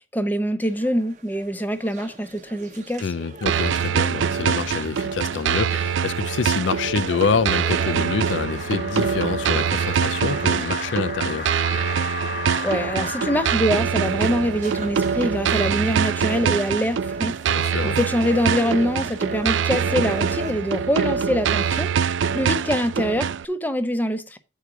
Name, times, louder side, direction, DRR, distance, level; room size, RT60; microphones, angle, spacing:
voice 1, 0.1-3.0 12.6-21.9 22.3-24.4, equal, 10° left, 0.7 m, -24 dB
sound 1, 0.6-20.5, right 2 dB, 40° right, 0.9 m, -41 dB
voice 2, 3.0-11.5 17.5-18.0, left 5 dB, 75° left, 0.4 m, -26 dB
sound 2, 3.5-23.5, right 7 dB, 75° right, 0.4 m, -24 dB
sound 3, 8.0-13.6, left 4 dB, 45° left, 1.0 m, -34 dB
8.3 x 4.7 x 6.0 m
head